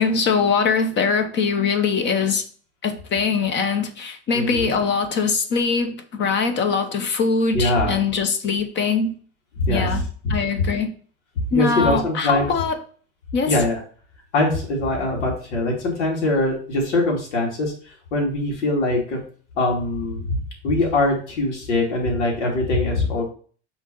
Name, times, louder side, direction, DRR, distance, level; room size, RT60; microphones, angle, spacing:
voice 1, 0.0-2.4 2.8-9.2 9.7-10.0 10.3-10.9 11.5-12.8 13.3-13.5, left 5 dB, 30° left, 0.9 m, -22 dB
voice 2, 4.3-4.7 7.5-8.0 9.6-10.6 11.5-12.5 13.5-13.8 14.3-17.7 18.1-19.2 19.6-20.4 20.6-23.2, left 2 dB, 85° left, 2.8 m, -22 dB
6.1 x 3.8 x 5.5 m
supercardioid pair, 140°, 34 cm